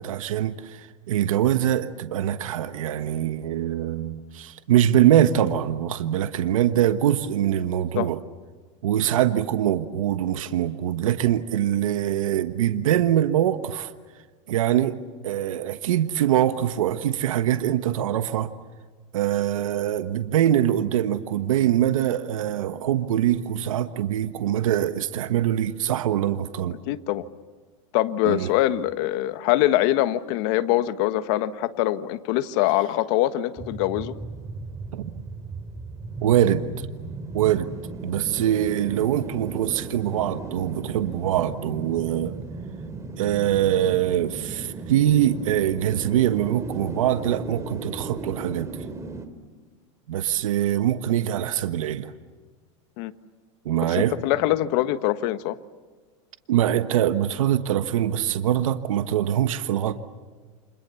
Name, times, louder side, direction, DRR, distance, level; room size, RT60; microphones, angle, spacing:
voice 1, 0.0-8.2 8.8-13.9 14.5-15.0 15.2-18.5 19.1-26.8 28.2-28.5 34.9-35.1 36.2-36.6 37.3-37.7 38.0-42.3 43.2-48.8 50.1-52.1 53.6-54.1 56.5-59.9, right 11 dB, 90° right, 10 dB, 1.3 m, -23 dB
voice 2, 26.9-27.2 27.9-34.1 53.0-53.1 53.8-55.6, left 14 dB, 60° left, 11 dB, 1.5 m, -23 dB
sound 1, 33.6-49.3, right 3 dB, 20° right, 3.0 m, -36 dB
30.0 x 26.5 x 7.1 m, 1.4 s
supercardioid pair, 130°, 17 cm